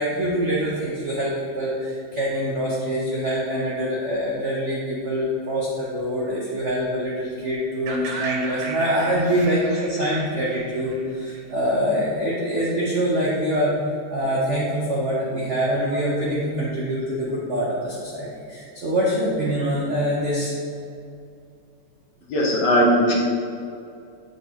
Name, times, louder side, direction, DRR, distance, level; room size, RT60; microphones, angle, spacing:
voice 1, 0.0-13.7 14.1-20.5, equal, 65° right, -5 dB, 0.7 m, -24 dB
sound 1, 7.9-11.7, right 3 dB, 85° right, 1.5 m, -35 dB
voice 2, 22.3-23.1, equal, 65° left, -2 dB, 1.5 m, -18 dB
7.8 x 4.7 x 2.8 m, 2.5 s
omnidirectional pair, 2.2 m